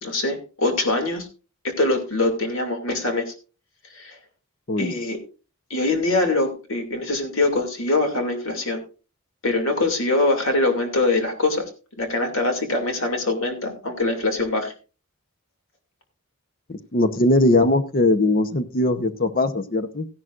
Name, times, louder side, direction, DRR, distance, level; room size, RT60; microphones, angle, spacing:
voice 1, 0.0-1.3 1.8-3.3 3.9-4.2 4.8-5.2 5.7-8.8 9.4-11.7 12.0-14.7, left 2 dB, 65° left, 3 dB, 2.6 m, -23 dB
voice 2, 16.7-20.1, left 2 dB, 40° left, 10 dB, 0.9 m, -20 dB
15.5 x 11.0 x 2.5 m, 0.34 s
head